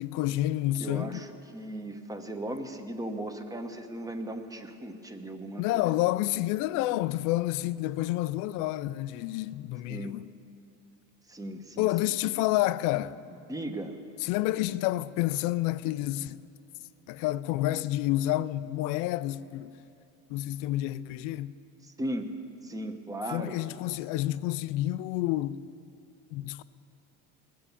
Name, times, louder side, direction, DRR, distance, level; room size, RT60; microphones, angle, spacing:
voice 1, 0.0-1.2 5.6-10.3 11.8-13.2 14.2-16.4 17.1-19.7 20.3-21.5 23.3-25.6 26.3-26.6, left 15 dB, 65° left, 0.5 m, -29 dB
voice 2, 0.8-6.0 9.9-10.2 11.3-12.3 13.5-14.0 21.8-22.3 22.6-23.6, right 1 dB, 10° right, 1.0 m, -37 dB
20.0 x 7.6 x 6.9 m
cardioid pair, 120°, 34 cm